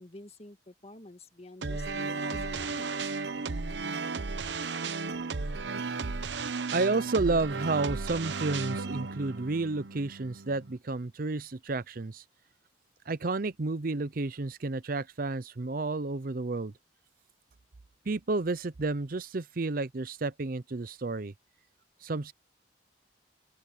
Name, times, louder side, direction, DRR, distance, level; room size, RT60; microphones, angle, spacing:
voice 1, 0.0-3.1, left 2 dB, 35° left, 1.7 m, -49 dB
sound 1, 1.6-10.8, right 4 dB, 80° right, 0.9 m, -34 dB
voice 2, 6.7-12.2 13.1-16.7 18.1-21.3 22.0-22.3, right 3 dB, 50° right, 0.6 m, -31 dB
open air
head